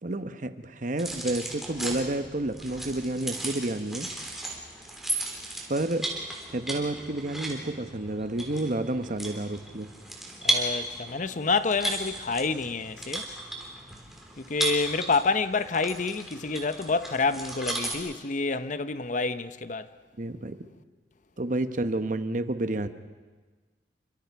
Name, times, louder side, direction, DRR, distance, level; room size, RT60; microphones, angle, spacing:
voice 1, 0.0-4.1 5.7-6.1 6.5-9.9 20.2-20.6 21.4-22.9, right 2 dB, 45° right, 1.0 m, -30 dB
sound 1, 1.0-17.9, right 1 dB, ahead, 3.5 m, -35 dB
voice 2, 10.4-13.3 14.4-19.9, left 4 dB, 45° left, 0.7 m, -28 dB
29.0 x 25.0 x 4.6 m
head